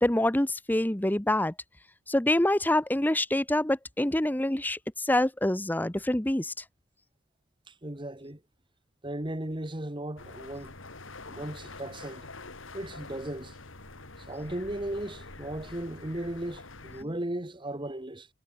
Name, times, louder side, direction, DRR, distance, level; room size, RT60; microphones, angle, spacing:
voice 1, 0.0-1.5 2.1-6.6, left 1 dB, 10° left, 0.8 m, -26 dB
voice 2, 7.7-8.4 9.0-10.7 11.3-12.3 12.7-13.5 14.3-18.3, right 1 dB, 25° right, 1.6 m, -36 dB
sound 1, 10.2-17.0, left 3 dB, 75° left, 3.4 m, -46 dB
head